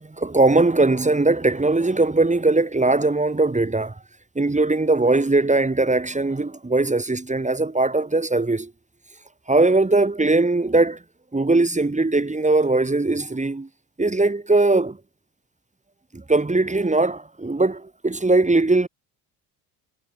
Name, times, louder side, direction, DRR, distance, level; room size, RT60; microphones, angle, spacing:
voice 1, 0.2-3.9 4.4-8.7 9.5-11.0 11.3-13.7 14.0-15.0 16.1-18.9, right 2 dB, 15° right, 4.4 m, -20 dB
hypercardioid pair, 65°, 44 cm